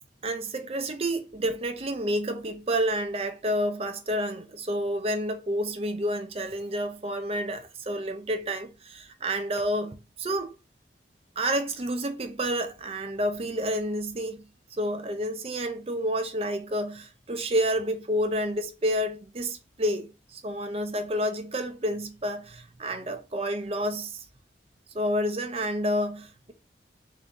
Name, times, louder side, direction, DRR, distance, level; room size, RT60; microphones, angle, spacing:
voice 1, 0.2-10.5 11.4-14.4 14.7-24.2 24.9-26.5, equal, 30° right, 0.5 m, -29 dB
3.9 x 2.7 x 3.6 m
head